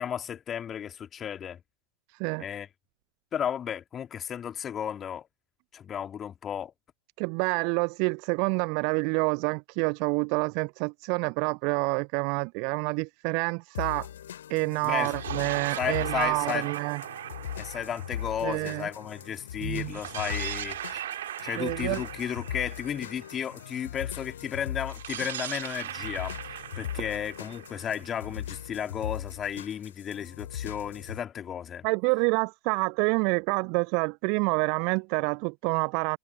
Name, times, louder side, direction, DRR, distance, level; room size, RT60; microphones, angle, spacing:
voice 1, 0.0-1.6 2.4-2.7 3.3-5.3 5.7-6.7 14.8-15.2 15.8-16.7 17.6-21.1 21.4-31.9, left 9 dB, 25° left, 2.8 m, -34 dB
voice 2, 7.2-14.1 14.5-17.0 18.4-18.9 19.6-19.9 21.6-22.0 31.8-36.2, right 35 dB, 45° right, 0.4 m, -27 dB
sound 1, 13.7-31.2, left 10 dB, 60° left, 3.7 m, -39 dB
sound 2, 14.9-19.3 19.9-23.8 24.9-28.7, right 12 dB, 60° right, 2.4 m, -39 dB
figure-of-eight pair, 90°, 0 cm